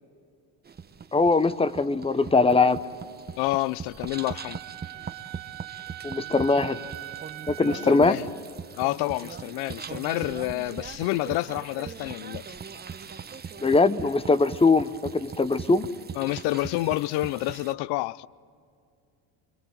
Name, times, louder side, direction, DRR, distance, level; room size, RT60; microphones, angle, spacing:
sound 1, 0.6-17.7, right 6 dB, 20° right, 1.0 m, -41 dB
voice 1, 1.1-2.8 6.0-6.8 7.5-8.2 13.6-15.9, left 3 dB, 15° left, 0.8 m, -21 dB
voice 2, 3.4-4.6 7.6-8.3 8.8-12.5 16.2-18.3, left 18 dB, 65° left, 0.6 m, -28 dB
Wind instrument woodwind instrument, 4.1-8.2, right 19 dB, 75° right, 1.4 m, -41 dB
26.0 x 23.0 x 7.8 m
supercardioid pair, 95°, 43 cm